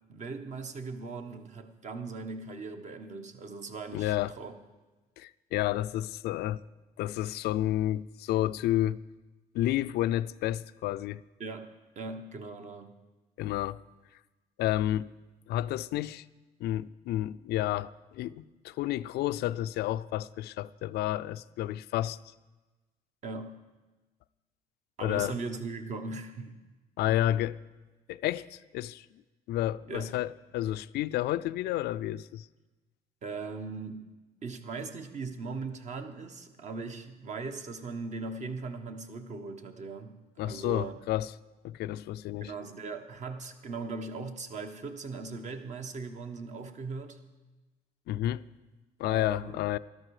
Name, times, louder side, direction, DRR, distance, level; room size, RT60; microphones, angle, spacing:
voice 1, 0.1-4.5 11.4-11.7 11.9-12.9 23.2-23.5 25.0-26.6 27.1-27.2 29.9-30.1 33.2-34.0 34.4-40.2 40.4-40.9 42.4-47.2 49.0-49.6, right 4 dB, 45° right, 1.2 m, -39 dB
voice 2, 3.9-4.4 5.2-6.6 7.0-9.0 9.5-11.2 13.4-13.8 14.6-15.1 15.5-16.2 16.6-22.2 25.0-25.4 27.0-27.6 28.1-29.1 29.5-32.5 40.4-41.3 41.6-42.5 48.1-48.5 49.0-49.8, left 13 dB, 75° left, 0.4 m, -30 dB
12.5 x 12.5 x 4.9 m
cardioid pair, 110°, 17 cm